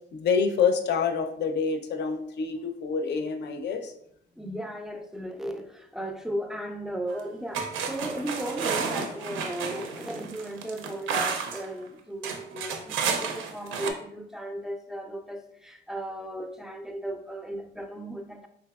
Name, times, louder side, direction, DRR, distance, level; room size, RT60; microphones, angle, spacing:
voice 1, 0.1-3.9, left 6 dB, 60° left, 6 dB, 0.5 m, -27 dB
voice 2, 4.4-18.5, right 1 dB, 5° right, 5 dB, 0.3 m, -36 dB
sound 1, 7.1-7.2 7.5-11.7 12.2-13.9, right 5 dB, 90° right, 0.4 m, -31 dB
3.3 x 2.7 x 2.3 m, 0.72 s
cardioid pair, 90°, 20 cm